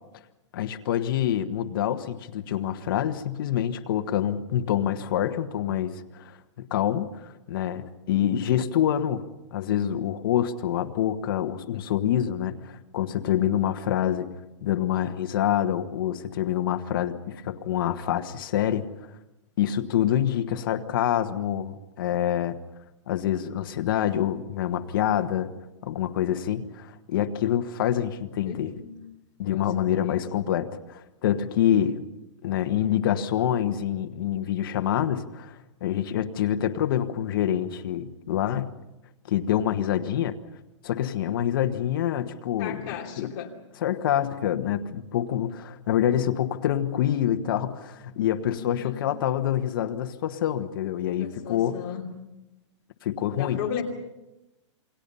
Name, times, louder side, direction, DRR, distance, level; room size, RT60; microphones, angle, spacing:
voice 1, 0.5-9.2 9.5-14.3 14.6-18.9 19.6-22.6 23.1-25.5 25.8-28.7 29.4-32.1 32.4-38.7 39.3-40.4 40.8-43.3 43.8-51.8 53.0-53.6, left 10 dB, 45° left, 7 dB, 1.4 m, -26 dB
voice 2, 28.5-29.0 29.5-30.3 42.6-43.5 48.5-49.0 51.2-52.0 53.3-53.8, left 8 dB, 30° left, 0 dB, 2.9 m, -36 dB
28.5 x 21.0 x 5.6 m, 0.96 s
hypercardioid pair, 170°, 16 cm